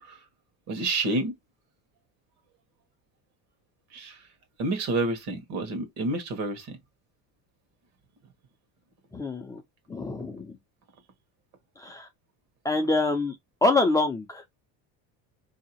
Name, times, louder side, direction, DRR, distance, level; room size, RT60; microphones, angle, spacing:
voice 1, 0.7-1.3 3.9-4.2 4.6-6.8, right 2 dB, 55° right, 1.3 m, -29 dB
voice 2, 9.1-9.6 9.9-10.6 11.8-12.1 12.6-13.4 13.6-14.4, left 2 dB, 10° left, 0.5 m, -26 dB
4.6 x 2.8 x 2.8 m
cardioid pair, 145°, 31 cm